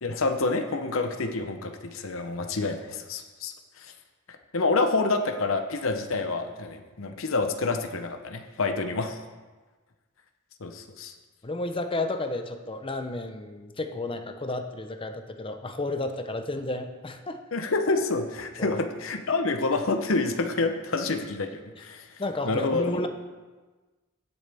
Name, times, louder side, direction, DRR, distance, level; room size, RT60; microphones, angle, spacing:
voice 1, 0.0-3.9 4.5-9.2 10.6-11.1 17.5-22.1 22.4-23.0, left 3 dB, 85° left, 6 dB, 0.8 m, -28 dB
voice 2, 11.4-17.4 18.6-18.8 22.2-23.1, left 2 dB, 25° left, 7 dB, 0.7 m, -32 dB
17.0 x 7.1 x 3.5 m, 1.3 s
head